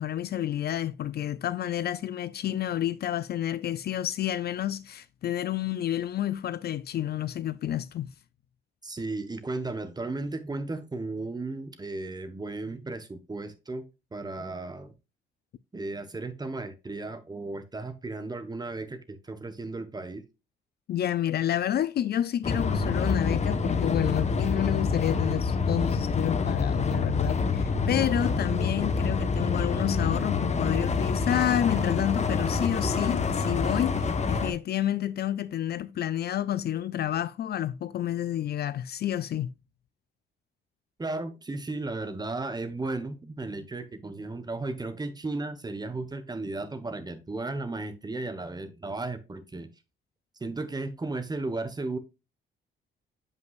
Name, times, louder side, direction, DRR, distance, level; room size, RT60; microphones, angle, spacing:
voice 1, 0.0-8.1 20.9-39.5, left 11 dB, 55° left, 0.4 m, -29 dB
voice 2, 8.8-14.9 15.7-20.2 41.0-49.7 50.4-52.0, right 2 dB, 20° right, 1.2 m, -35 dB
sound 1, 22.4-34.5, left 4 dB, 35° left, 1.0 m, -27 dB
7.9 x 5.4 x 2.4 m
cardioid pair, 90°, 20 cm